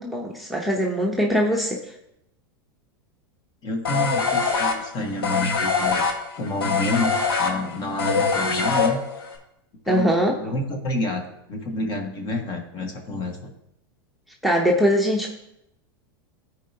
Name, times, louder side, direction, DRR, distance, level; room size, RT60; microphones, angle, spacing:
voice 1, 0.0-1.9 9.9-10.5 14.4-15.3, equal, ahead, 0 dB, 0.9 m, -22 dB
voice 2, 3.6-6.0 6.4-9.0 9.9-11.2 11.5-13.5, left 2 dB, 35° left, 3 dB, 1.6 m, -29 dB
sound 1, 3.8-9.3, left 5 dB, 85° left, 1.3 m, -23 dB
14.0 x 4.7 x 2.9 m, 0.82 s
hypercardioid pair, 115°, 12 cm